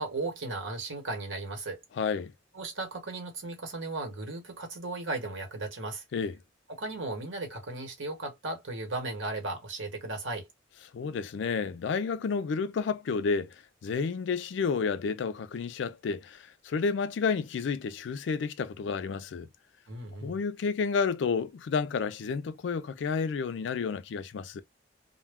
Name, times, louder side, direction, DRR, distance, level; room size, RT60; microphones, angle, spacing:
voice 1, 0.0-1.8 2.5-6.0 6.7-10.5 19.9-20.4, right 2 dB, 80° right, 1.1 m, -36 dB
voice 2, 2.0-2.3 6.1-6.4 10.9-13.6 13.8-19.5 20.2-24.6, left 5 dB, 65° left, 0.3 m, -30 dB
2.1 x 2.1 x 3.4 m
head